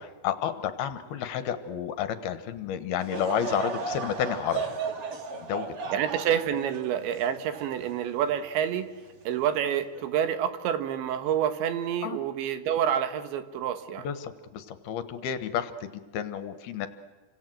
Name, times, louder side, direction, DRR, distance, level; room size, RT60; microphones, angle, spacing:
voice 1, 0.0-4.6 5.4-5.9 12.0-12.2 14.0-16.9, left 9 dB, 70° left, 11 dB, 2.8 m, -31 dB
Laughter / Crowd, 3.0-8.5 9.0-9.1 9.9-10.2, right 5 dB, 45° right, 2.1 m, -35 dB
voice 2, 5.9-8.9 9.3-14.1, right 9 dB, 85° right, 9 dB, 3.8 m, -28 dB
29.5 x 25.5 x 7.7 m, 1.4 s
omnidirectional pair, 5.1 m